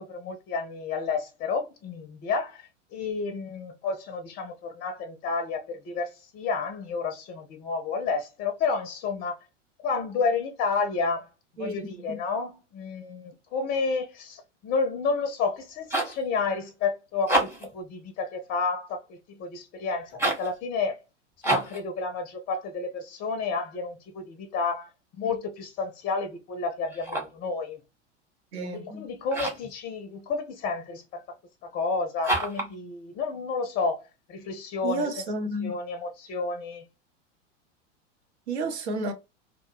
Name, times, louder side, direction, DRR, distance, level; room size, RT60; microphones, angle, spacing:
voice 1, 0.0-2.6 2.9-9.3 9.8-11.3 11.6-21.0 21.4-24.9 25.2-27.8 28.7-31.2 31.6-34.0 34.3-35.1 35.6-36.8, left 4 dB, 25° left, 0.5 m, -30 dB
voice 2, 11.6-12.2 28.5-29.1 34.8-35.7 38.5-39.1, right 2 dB, 65° right, 0.7 m, -31 dB
sound 1, 15.6-16.2 17.1-17.8 20.1-20.5 21.4-21.8 26.9-27.4 29.3-29.7 32.2-32.7, right 1 dB, 5° right, 0.8 m, -28 dB
2.1 x 2.0 x 3.1 m
figure-of-eight pair, 85°, 37 cm